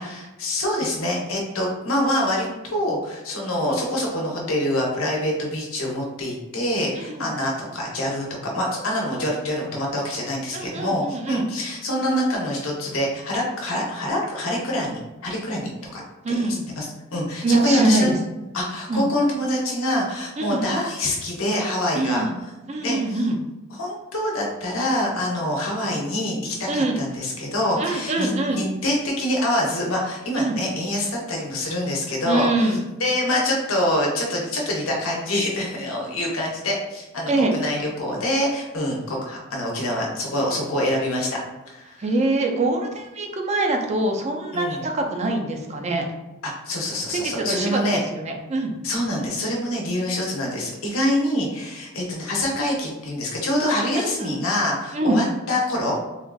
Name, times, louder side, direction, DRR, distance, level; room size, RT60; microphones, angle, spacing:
voice 1, 0.0-16.4 16.8-16.9 17.1-18.1 18.5-22.2 22.8-23.2 23.7-41.4 41.7-42.0 44.5-44.8 46.4-48.0 48.8-56.0, left 1 dB, 75° left, -2 dB, 0.8 m, -25 dB
voice 2, 7.0-7.3 10.5-11.4 16.2-16.6 17.4-18.2 18.9-19.1 20.4-20.7 21.9-22.3 22.7-23.4 26.7-27.0 27.8-28.6 30.4-30.6 32.3-32.8 37.3-37.5 42.0-46.1 47.1-47.8 48.1-48.7 54.0-54.4 54.9-55.2, right 2 dB, 30° right, 2 dB, 0.4 m, -24 dB
3.8 x 2.4 x 2.3 m, 1.1 s
head